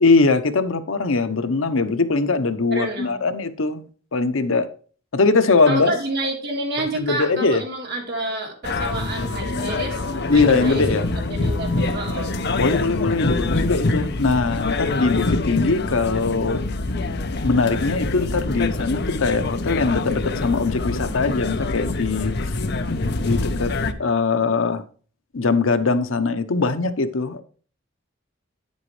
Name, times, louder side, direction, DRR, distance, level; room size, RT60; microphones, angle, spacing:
voice 1, 0.0-3.8 4.1-4.7 5.1-5.9 6.8-7.6 10.3-11.1 12.6-16.6 17.4-22.5 23.2-23.7 24.0-24.8 25.3-27.4, left 3 dB, 90° left, 0.9 m, -21 dB
voice 2, 2.7-3.2 5.6-12.4, right 1 dB, 55° right, 3.4 m, -29 dB
sound 1, 8.6-23.9, left 2 dB, 55° left, 0.8 m, -25 dB
9.8 x 8.2 x 3.2 m
head